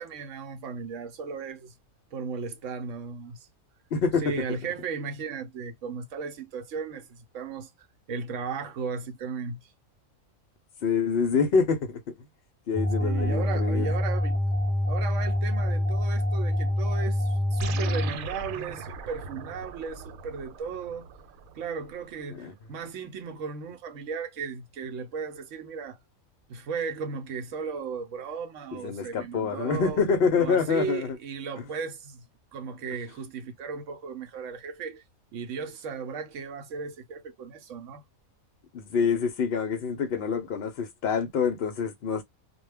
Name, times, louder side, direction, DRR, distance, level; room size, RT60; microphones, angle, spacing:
voice 1, 0.0-1.7 2.1-3.5 4.2-7.7 8.1-9.6 13.0-14.4 14.9-21.1 21.5-26.0 26.5-30.0 30.4-32.2 32.5-35.0 35.3-38.0, right 5 dB, 70° right, 0.9 m, -36 dB
voice 2, 3.9-4.3 10.8-12.0 12.7-13.9 22.3-22.5 28.7-31.2 38.7-42.2, left 5 dB, 60° left, 0.6 m, -26 dB
sound 1, 12.7-18.1, left 1 dB, 10° left, 0.5 m, -26 dB
sound 2, 17.6-22.3, right 5 dB, 85° right, 1.1 m, -40 dB
2.2 x 2.2 x 3.3 m
omnidirectional pair, 1.4 m